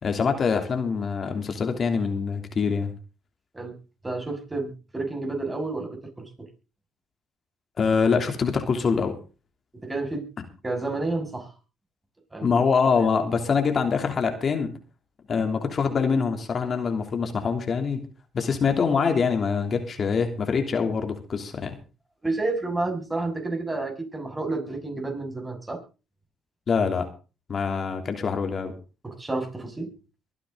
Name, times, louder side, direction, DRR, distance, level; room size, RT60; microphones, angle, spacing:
voice 1, 0.0-2.9 7.8-9.1 12.4-14.7 15.3-18.1 18.3-21.8 26.7-27.1 27.5-28.7, left 5 dB, 50° left, 5 dB, 3.0 m, -24 dB
voice 2, 4.0-6.5 9.7-10.2 10.6-11.5 12.3-12.6 22.2-25.8 29.0-29.9, right 2 dB, 20° right, 4 dB, 6.7 m, -30 dB
23.5 x 9.8 x 3.9 m, 0.34 s
supercardioid pair, 65°, 0 cm